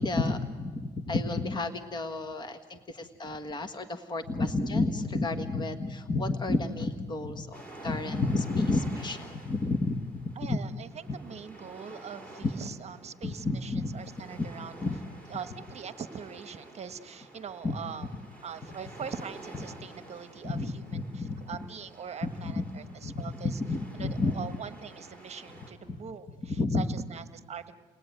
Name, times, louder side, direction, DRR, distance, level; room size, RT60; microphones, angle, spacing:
voice 1, 0.0-10.6 11.1-11.2 12.4-12.5 13.2-14.0 14.4-14.5 14.8-15.0 17.6-17.7 20.4-21.4 22.2-22.6 23.0-24.3 26.6-26.9, left 3 dB, 25° left, 8 dB, 1.6 m, -31 dB
sound 1, 7.5-25.7, right 1 dB, 10° left, 5.6 m, -50 dB
voice 2, 10.3-14.7 15.3-18.1 18.4-23.6 23.9-27.8, right 7 dB, 40° right, 11 dB, 1.2 m, -42 dB
30.0 x 20.0 x 9.4 m, 1.4 s
cardioid pair, 110°, 17 cm